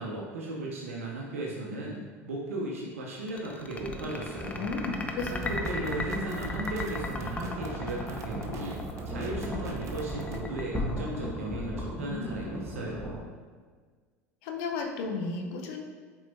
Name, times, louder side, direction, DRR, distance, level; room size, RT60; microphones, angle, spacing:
voice 1, 0.0-4.7 5.3-8.8 9.1-13.2, right 2 dB, 75° right, -3 dB, 0.9 m, -36 dB
sound 1, 3.2-11.9, left 3 dB, 20° left, 0.6 m, -37 dB
sound 2, 3.7-13.2, equal, 10° right, 1.3 m, -39 dB
voice 2, 4.6-5.3 5.8-5.9 12.1-12.6 14.4-15.8, left 4 dB, 60° left, 2 dB, 0.8 m, -34 dB
sound 3, 5.2-10.4, right 4 dB, 40° right, 0.7 m, -40 dB
7.4 x 4.7 x 2.7 m, 1.5 s
figure-of-eight pair, 75°, 8 cm